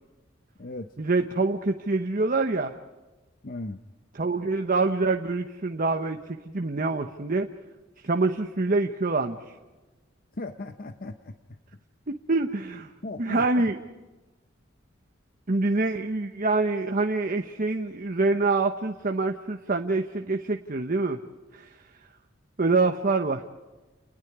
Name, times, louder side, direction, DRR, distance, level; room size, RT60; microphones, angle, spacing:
voice 1, 1.0-2.8 4.1-7.5 8.0-9.5 12.1-12.9 13.2-13.8 15.5-21.2 21.5-21.7 22.6-23.4, right 3 dB, 45° right, 5 dB, 1.0 m, -26 dB
voice 2, 3.4-3.8 10.4-11.3 13.0-13.7, left 2 dB, 50° left, 8 dB, 0.8 m, -37 dB
29.5 x 20.5 x 4.9 m, 1.2 s
head